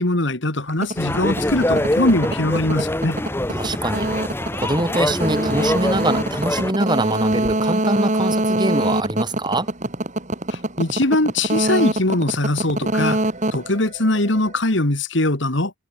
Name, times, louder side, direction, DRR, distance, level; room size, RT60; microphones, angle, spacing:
voice 1, 0.0-3.2 10.5-13.2 13.5-15.7, left 2 dB, 60° left, 2.4 m, -21 dB
sound 1, 0.7-14.5, right 1 dB, 35° right, 2.9 m, -24 dB
sound 2, 1.0-6.7, left 1 dB, 10° left, 0.9 m, -24 dB
voice 2, 3.5-4.1 4.6-9.7, right 1 dB, 20° right, 7.6 m, -24 dB
head